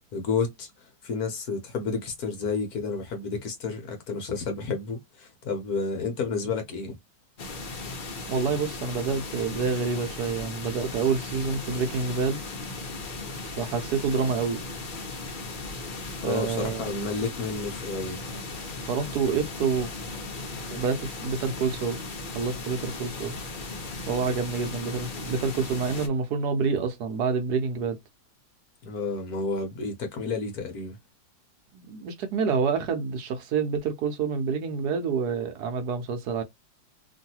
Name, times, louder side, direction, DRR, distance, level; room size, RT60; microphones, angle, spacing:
voice 1, 0.1-6.9 16.2-18.2 28.8-31.0, left 4 dB, 60° left, 1.2 m, -31 dB
sound 1, 7.4-26.1, left 3 dB, 90° left, 0.4 m, -37 dB
voice 2, 8.3-12.4 13.4-14.6 16.2-16.9 18.8-19.9 20.7-22.0 22.3-23.4 24.1-28.0 31.7-36.4, right 5 dB, 65° right, 1.1 m, -28 dB
3.0 x 2.6 x 2.8 m
omnidirectional pair, 2.1 m